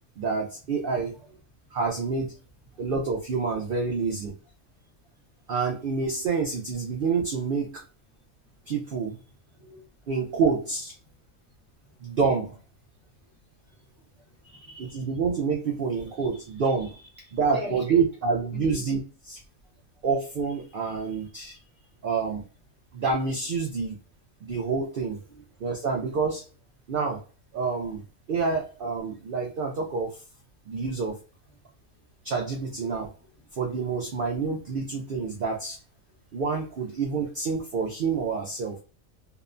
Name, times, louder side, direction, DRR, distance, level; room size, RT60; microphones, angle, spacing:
voice 1, 0.2-1.2 1.7-2.3 2.8-4.3 5.5-7.8 8.7-9.2 10.1-10.9 12.0-12.6 14.8-17.0 17.3-19.0 19.3-19.4 20.0-21.6 22.0-22.5 22.9-24.0 24.4-25.2 25.6-26.4 26.9-27.2 27.5-30.2 30.7-31.2 32.2-33.1 33.5-35.8 36.3-38.8, right 5 dB, 70° right, 0.5 m, -28 dB
voice 2, 1.1-1.8 2.7-2.9 4.7-5.5 8.1-8.6 9.2-10.1 11.0-11.5 11.8-12.2 12.9-15.1 15.9-17.8 18.3-18.8 19.6-20.0 20.6-22.0 22.9-23.0 25.3-25.6 31.5-32.1 33.2-33.5 36.3-36.4, left 3 dB, 40° left, 0.4 m, -47 dB
2.8 x 2.1 x 2.4 m
omnidirectional pair, 1.5 m